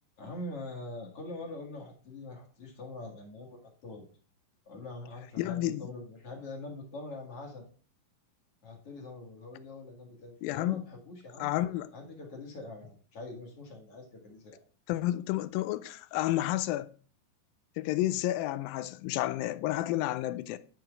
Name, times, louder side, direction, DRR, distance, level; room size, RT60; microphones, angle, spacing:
voice 1, 0.2-4.0 4.7-7.6 8.6-11.5 11.9-14.6, left 2 dB, 45° left, 2.4 m, -43 dB
voice 2, 5.4-5.9 10.4-10.8 11.4-11.9 14.9-16.9 17.8-20.6, left 15 dB, 85° left, 2.3 m, -31 dB
10.0 x 5.9 x 3.6 m
omnidirectional pair, 4.1 m